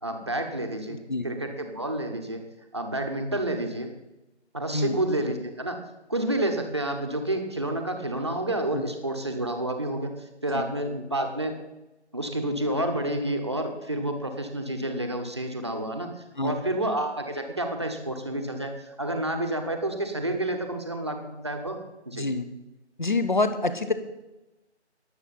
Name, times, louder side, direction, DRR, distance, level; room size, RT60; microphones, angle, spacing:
voice 1, 0.0-1.0 1.2-2.5 2.7-3.9 4.5-5.8 6.1-11.5 12.1-21.8 22.0-22.3, right 1 dB, 25° right, 4 dB, 1.1 m, -29 dB
voice 2, 22.1-22.4 23.0-23.9, left 2 dB, 45° left, 11 dB, 1.2 m, -26 dB
22.0 x 7.8 x 4.1 m, 0.99 s
figure-of-eight pair, 170°, 35 cm